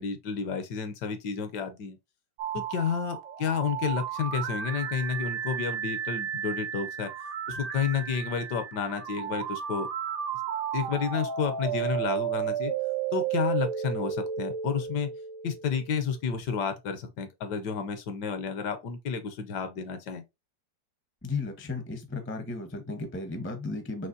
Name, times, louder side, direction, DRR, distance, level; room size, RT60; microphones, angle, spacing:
voice 1, 0.0-2.0 2.5-7.1 7.5-9.9 10.7-12.7 13.1-15.1 15.4-20.2, left 6 dB, 70° left, 1.3 m, -31 dB
sound 1, 2.4-16.2, right 8 dB, 70° right, 1.2 m, -33 dB
voice 2, 21.2-24.1, left 3 dB, 15° left, 0.4 m, -34 dB
5.6 x 3.0 x 2.7 m
omnidirectional pair, 2.0 m